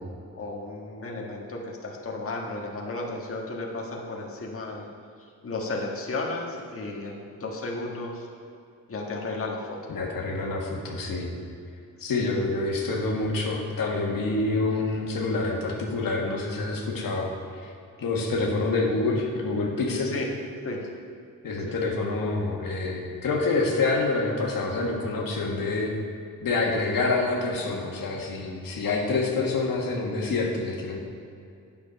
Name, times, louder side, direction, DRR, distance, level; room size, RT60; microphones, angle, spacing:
voice 1, 0.3-4.9 5.4-8.3 8.9-9.8 12.0-12.3 20.0-20.3 20.6-20.8 21.7-21.8, left 2 dB, 40° left, -2 dB, 1.5 m, -34 dB
voice 2, 9.9-11.3 12.0-17.3 17.6-17.7 18.0-20.1 21.4-25.9 26.4-31.0, left 3 dB, 75° left, -1 dB, 1.5 m, -27 dB
9.6 x 7.2 x 5.2 m, 2.5 s
cardioid pair, 100°, 34 cm